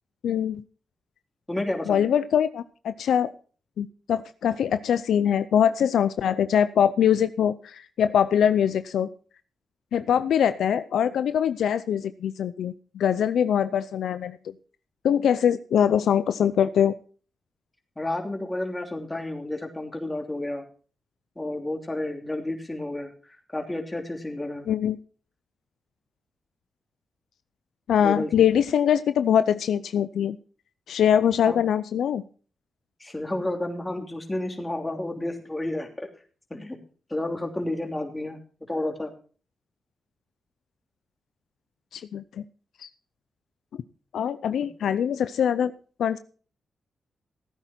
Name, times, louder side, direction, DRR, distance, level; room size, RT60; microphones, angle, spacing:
voice 1, 0.2-0.6 1.9-3.3 3.8-9.1 9.9-14.4 15.0-16.9 24.7-25.0 27.9-30.4 30.9-32.2 41.9-42.2 42.8-42.9 44.1-45.7 46.0-46.2, left 9 dB, 85° left, 13 dB, 0.5 m, -23 dB
voice 2, 1.5-2.1 18.0-20.6 21.4-24.7 28.0-28.5 31.5-31.6 33.0-36.1 36.5-36.8 37.1-39.1, left 1 dB, 15° left, 3 dB, 3.0 m, -31 dB
15.5 x 9.2 x 4.4 m, 0.40 s
cardioid pair, 65°, 0 cm